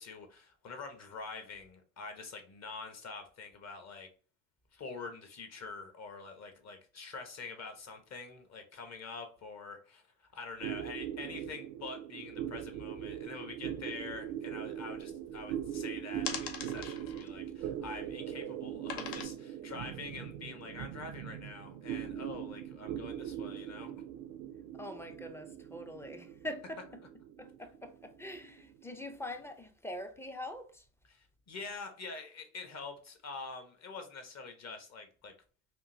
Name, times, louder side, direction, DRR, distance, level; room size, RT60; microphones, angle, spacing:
voice 1, 0.0-4.1 4.7-23.9 31.1-35.3, left 4 dB, 40° left, 1.1 m, -46 dB
sound 1, 10.6-29.4, right 10 dB, 80° right, 0.5 m, -41 dB
sound 2, 14.2-14.3 14.6-15.7 16.1-18.2 18.8-19.2, left 7 dB, 65° left, 0.7 m, -42 dB
voice 2, 24.7-27.0 27.4-30.9, left 1 dB, 5° left, 0.5 m, -44 dB
3.6 x 2.6 x 2.6 m
hypercardioid pair, 70°, 41 cm